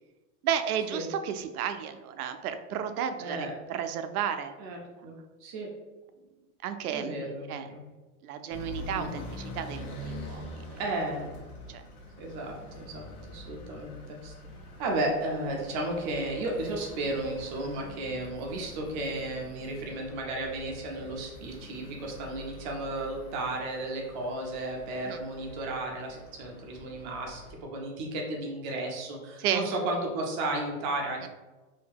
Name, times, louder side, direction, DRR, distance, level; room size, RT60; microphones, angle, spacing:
voice 1, 0.4-4.5 6.6-7.2 7.5-7.7 8.2-10.4 11.7-11.8 25.0-25.2 29.4-29.7, right 8 dB, 85° right, 8 dB, 0.5 m, -32 dB
voice 2, 3.2-3.5 4.6-5.7 6.9-7.8 8.8-9.2 10.8-11.4 12.2-14.3 14.8-31.3, right 2 dB, 35° right, 0 dB, 0.6 m, -34 dB
sound 1, 8.5-27.5, left 1 dB, 80° left, 1.1 m, -45 dB
2.8 x 2.7 x 3.5 m, 1.2 s
supercardioid pair, 155°, 44 cm